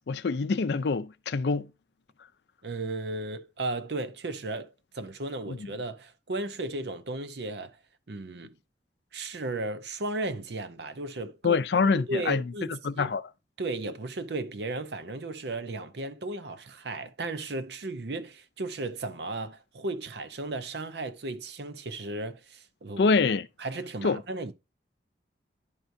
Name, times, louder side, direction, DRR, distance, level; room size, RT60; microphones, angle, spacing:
voice 1, 0.1-1.7 5.5-5.6 11.4-13.2 23.0-23.5 24.0-24.2, left 4 dB, 70° left, 0.5 m, -25 dB
voice 2, 2.6-7.8 8.1-8.5 9.1-11.6 11.9-13.1 13.6-23.1 23.6-24.5, right 2 dB, 70° right, 0.7 m, -35 dB
10.5 x 4.6 x 2.6 m
head